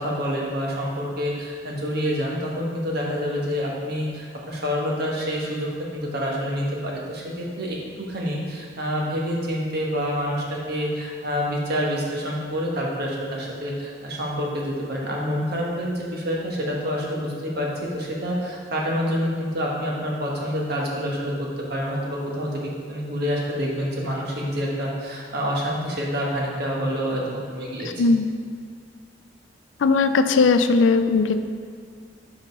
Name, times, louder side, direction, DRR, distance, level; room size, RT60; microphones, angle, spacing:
voice 1, 0.0-28.0, equal, 60° right, -2 dB, 1.3 m, -27 dB
voice 2, 29.8-31.4, left 4 dB, 85° left, 10 dB, 0.4 m, -18 dB
5.3 x 5.0 x 5.4 m, 2.2 s
head